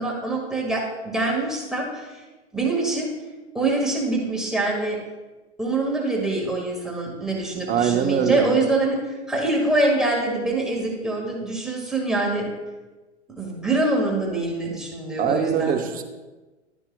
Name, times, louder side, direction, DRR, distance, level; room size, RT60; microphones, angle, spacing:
voice 1, 0.0-2.2 2.5-3.1 3.5-5.0 5.6-9.0 9.3-12.5 13.4-15.8, right 2 dB, ahead, -3 dB, 1.8 m, -24 dB
voice 2, 7.7-8.5 15.2-16.0, right 8 dB, 25° right, 5 dB, 0.8 m, -22 dB
12.0 x 9.8 x 2.3 m, 1.2 s
hypercardioid pair, 110°, 36 cm